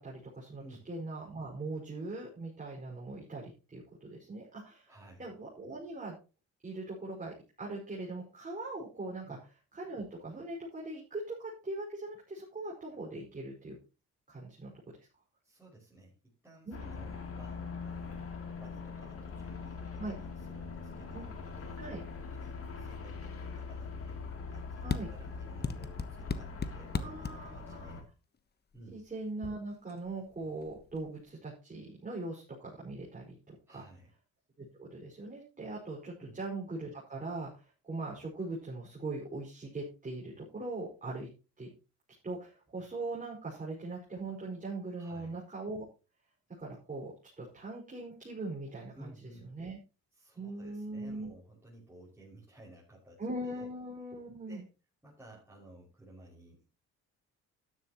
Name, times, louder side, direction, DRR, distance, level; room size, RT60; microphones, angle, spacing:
voice 1, 0.0-4.9 5.2-6.2 6.6-9.4 9.7-13.8 14.3-14.7 16.6-17.2 20.0-20.1 21.1-21.3 21.8-22.0 24.8-25.1 26.9-27.9 28.9-33.8 34.6-41.3 41.6-41.7 42.2-45.9 46.6-49.1 49.5-49.8 50.3-51.3 53.2-54.6, right 2 dB, 25° right, -4 dB, 5.4 m, -41 dB
voice 2, 4.9-5.3 9.2-9.4 15.4-16.1 16.4-18.3 18.6-21.8 22.2-24.2 24.5-28.1 28.7-29.0 33.7-34.1 36.2-36.4 45.0-45.4 48.9-49.5 50.1-53.7 54.5-54.6 55.0-56.7, right 1 dB, 5° right, -6 dB, 6.1 m, -55 dB
sound 1, 16.7-28.0, left 4 dB, 50° left, 3.1 m, -42 dB
sound 2, 24.9-25.0 25.6-27.3 28.7-29.1 29.4-29.6 29.9-31.1, left 5 dB, 35° left, 1.2 m, -36 dB
12.5 x 11.0 x 3.0 m, 0.32 s
cardioid pair, 90°, 30 cm